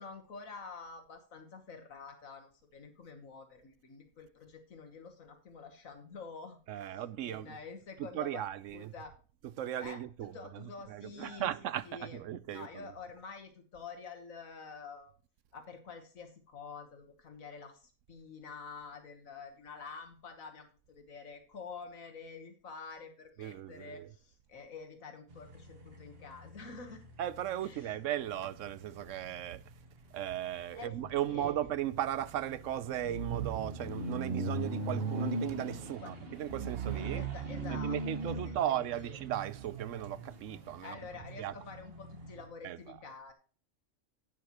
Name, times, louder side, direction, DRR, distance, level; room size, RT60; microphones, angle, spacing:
voice 1, 0.0-8.4 8.7-9.1 9.8-11.5 11.8-12.2 12.5-15.1 15.5-27.1 27.6-28.0 30.8-31.5 35.8-36.1 36.9-38.0 38.2-39.2 40.8-43.3, left 5 dB, 80° left, 1.7 m, -48 dB
voice 2, 6.7-7.6 8.0-8.9 9.6-10.3 10.9-12.7 23.4-24.1 27.2-29.6 30.1-37.2 37.7-41.0 41.4-41.5 42.6-42.8, right 11 dB, 70° right, 1.0 m, -36 dB
sound 1, 25.3-42.5, right 3 dB, 45° right, 1.6 m, -40 dB
11.0 x 8.8 x 2.9 m
omnidirectional pair, 1.4 m